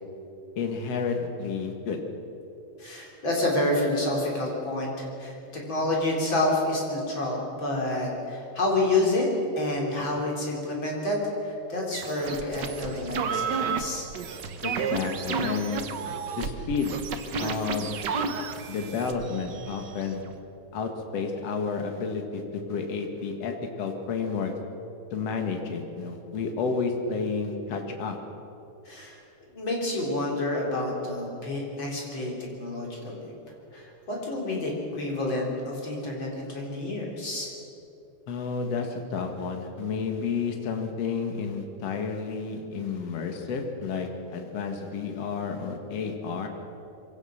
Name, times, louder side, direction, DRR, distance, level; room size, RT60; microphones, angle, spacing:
voice 1, 0.6-2.0 14.6-15.8 16.4-17.0 17.4-18.0 18.7-20.2 20.7-22.4 22.7-24.5 25.1-28.2 38.3-46.5, left 5 dB, 55° left, 4 dB, 2.7 m, -31 dB
voice 2, 2.8-9.3 9.5-14.1 28.8-29.2 29.5-33.3 33.7-37.5, left 2 dB, 40° left, -2 dB, 4.6 m, -29 dB
sound 1, 11.9-20.4, right 5 dB, 75° right, 1.0 m, -32 dB
23.5 x 17.0 x 6.6 m, 2.8 s
omnidirectional pair, 3.6 m